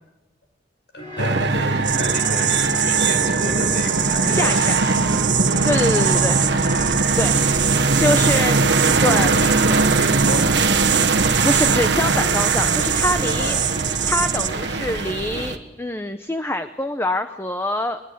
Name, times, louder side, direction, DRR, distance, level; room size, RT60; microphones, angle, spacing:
voice 1, 0.9-5.0 5.9-6.2 8.3-8.5 9.2-11.1 13.3-13.7, left 1 dB, 65° left, 5 dB, 5.7 m, -31 dB
sound 1, 1.0-15.4, equal, 30° left, 6.9 m, -36 dB
sound 2, 1.2-15.6, right 3 dB, 70° right, 1.2 m, -21 dB
sound 3, 1.8-14.5, right 11 dB, 45° right, 1.2 m, -24 dB
voice 2, 4.3-4.8 5.6-6.4 7.2-8.6 9.0-9.5 11.4-13.6 14.0-18.0, left 1 dB, 15° left, 9 dB, 0.8 m, -25 dB
22.0 x 20.5 x 8.5 m, 1.1 s
head